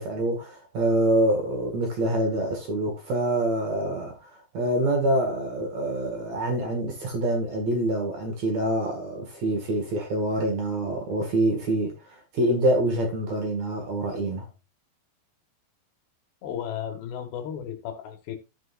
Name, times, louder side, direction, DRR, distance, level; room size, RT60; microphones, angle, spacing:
voice 1, 0.0-11.9 12.3-14.5, right 1 dB, 50° right, 2.5 m, -26 dB
voice 2, 16.4-18.4, left 9 dB, 90° left, 3.6 m, -34 dB
15.0 x 5.1 x 2.5 m
omnidirectional pair, 4.7 m